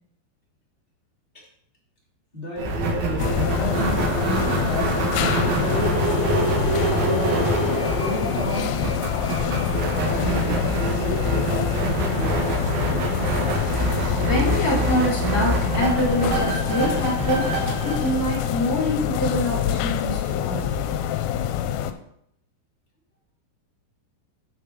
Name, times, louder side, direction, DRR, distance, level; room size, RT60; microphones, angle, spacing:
voice 1, 2.3-4.4 5.3-7.5 7.9-8.8 10.0-10.6 10.9-14.3, left 1 dB, 20° left, -4 dB, 1.7 m, -33 dB
sound 1, 2.6-19.1, right 2 dB, 65° right, 3.0 m, -25 dB
sound 2, 3.2-21.9, left 10 dB, 80° left, 2.7 m, -26 dB
voice 2, 14.2-17.5 17.8-20.7, left 1 dB, 40° left, -5 dB, 2.8 m, -25 dB
8.7 x 4.9 x 6.0 m, 0.72 s
omnidirectional pair, 5.2 m